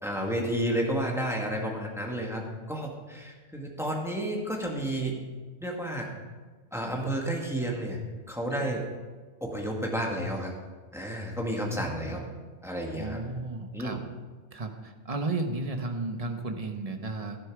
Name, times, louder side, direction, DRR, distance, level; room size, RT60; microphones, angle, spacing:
voice 1, 0.0-2.4 2.7-5.2 5.6-6.1 6.7-8.0 8.3-8.8 9.4-10.5 10.9-12.2 12.6-13.2 13.7-14.0, right 1 dB, ahead, -1 dB, 1.9 m, -31 dB
voice 2, 11.7-12.2 12.9-14.0 14.5-17.4, right 3 dB, 30° right, 5 dB, 1.1 m, -34 dB
12.0 x 11.5 x 4.8 m, 1.4 s
omnidirectional pair, 1.3 m